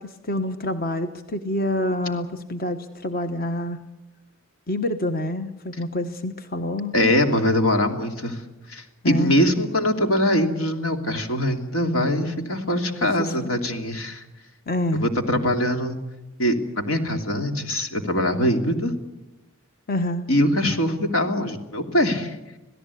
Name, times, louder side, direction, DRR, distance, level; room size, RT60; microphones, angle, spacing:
voice 1, 0.0-3.8 4.7-6.9 9.0-9.4 13.0-13.4 14.7-15.1 19.9-20.3, left 1 dB, 45° left, 8 dB, 1.2 m, -27 dB
voice 2, 6.9-8.4 8.7-14.2 15.0-16.0 16.4-18.9 20.3-22.4, left 1 dB, 85° left, 5 dB, 2.9 m, -22 dB
27.0 x 17.0 x 8.4 m, 1.0 s
head